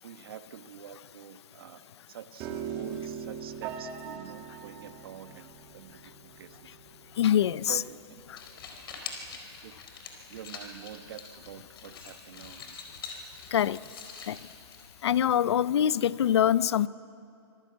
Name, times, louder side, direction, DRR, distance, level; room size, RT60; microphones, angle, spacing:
voice 1, 0.0-6.8 7.7-8.2 8.5-8.9 9.3-9.8 10.3-12.8, right 9 dB, 55° right, 10 dB, 1.2 m, -47 dB
Piano, 2.4-8.6, right 7 dB, 25° right, 2.0 m, -42 dB
voice 2, 7.2-7.8 13.5-13.8 14.3-14.4 15.0-16.9, left 10 dB, 70° left, 19 dB, 0.6 m, -24 dB
sound 1, 8.2-15.2, left 5 dB, 55° left, 4.1 m, -45 dB
26.0 x 18.0 x 8.5 m, 2.6 s
hypercardioid pair, 175°, 14 cm